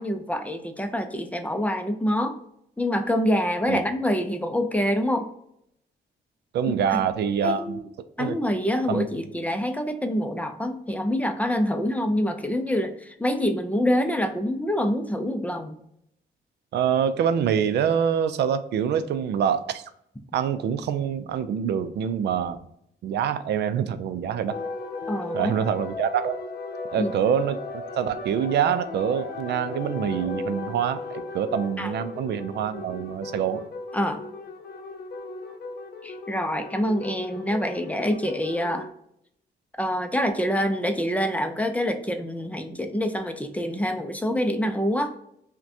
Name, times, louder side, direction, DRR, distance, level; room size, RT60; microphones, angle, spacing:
voice 1, 0.0-2.4 2.8-5.3 6.7-7.0 7.4-7.9 8.2-15.7 25.1-25.5 27.0-27.1 31.8-31.9 33.9-34.2 36.0-38.9 39.8-45.1, equal, 10° left, 6 dB, 0.4 m, -26 dB
voice 2, 6.5-7.8 8.2-8.4 8.9-9.1 16.7-19.8 20.3-22.6 23.0-24.5 25.3-26.4 26.9-27.6 28.0-33.6, right 8 dB, 80° right, 11 dB, 0.4 m, -25 dB
sound 1, 24.5-38.9, left 3 dB, 65° left, 0.7 m, -36 dB
5.8 x 2.2 x 2.7 m, 0.74 s
cardioid pair, 125°, 17 cm